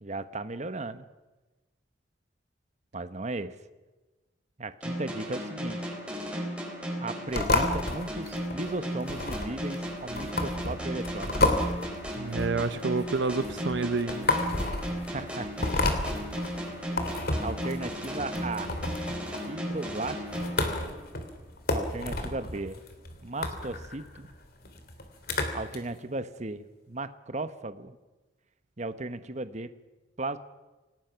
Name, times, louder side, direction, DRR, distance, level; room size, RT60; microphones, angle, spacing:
voice 1, 0.0-1.1 2.9-3.6 4.6-6.0 7.0-11.4 15.1-15.7 17.4-18.7 19.5-20.2 21.7-22.8 23.2-24.3 25.5-28.0 28.8-29.7 30.2-30.4, right 2 dB, 40° right, 11 dB, 1.1 m, -36 dB
sound 1, 4.8-21.4, equal, 5° right, 4.5 m, -35 dB
sound 2, 7.3-25.8, left 2 dB, 55° left, 2.9 m, -31 dB
voice 2, 12.2-14.3, right 4 dB, 75° right, 13 dB, 0.8 m, -29 dB
27.5 x 18.5 x 5.9 m, 1.2 s
head